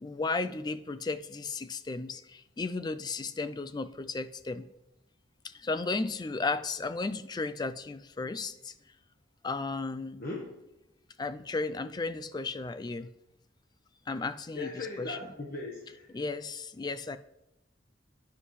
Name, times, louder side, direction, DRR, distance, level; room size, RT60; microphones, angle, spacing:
voice 1, 0.0-4.7 5.5-8.7 9.4-10.2 11.2-13.1 14.1-15.2 16.1-17.2, left 3 dB, 20° left, 12 dB, 0.3 m, -34 dB
voice 2, 14.5-16.1, left 2 dB, 45° left, -2 dB, 1.3 m, -38 dB
11.5 x 9.7 x 3.2 m, 0.90 s
head